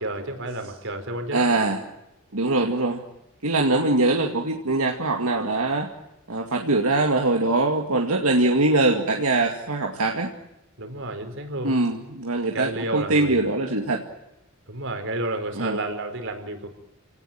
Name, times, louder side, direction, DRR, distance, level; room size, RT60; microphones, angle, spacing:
voice 1, 0.0-1.5 10.8-11.8 12.5-13.4 14.7-16.7, right 1 dB, 65° right, 6 dB, 4.7 m, -30 dB
voice 2, 1.3-1.8 2.3-3.0 3.4-5.9 6.3-10.3 11.6-14.1 15.6-15.8, right 2 dB, 85° right, 2 dB, 2.3 m, -22 dB
29.0 x 18.5 x 8.9 m, 0.92 s
head